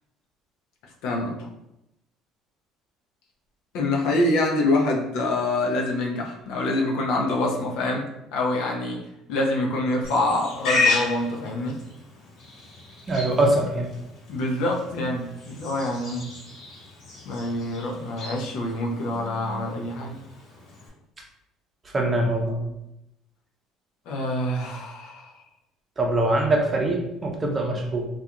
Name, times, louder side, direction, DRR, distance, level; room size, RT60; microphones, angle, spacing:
voice 1, 1.0-1.5 3.7-8.1 8.3-9.0 9.3-11.8 14.3-16.3 17.2-20.2 24.1-25.3, left 2 dB, 75° left, 0 dB, 0.5 m, -26 dB
Livestock farm animals working animals, 10.0-20.9, left 3 dB, 60° left, 0.9 m, -33 dB
voice 2, 13.1-13.9 21.8-22.6 26.0-28.1, right 1 dB, 30° right, 0 dB, 0.6 m, -23 dB
2.3 x 2.3 x 2.8 m, 0.87 s
supercardioid pair, 90°, 0 cm